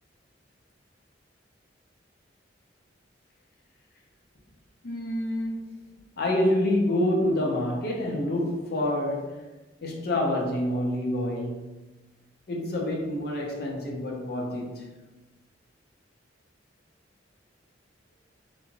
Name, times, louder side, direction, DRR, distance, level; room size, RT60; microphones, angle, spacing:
voice 1, 4.8-5.6 6.2-9.4 9.8-11.8 12.5-14.9, left 1 dB, 55° left, 0.5 m, -27 dB
2.5 x 2.2 x 3.0 m
head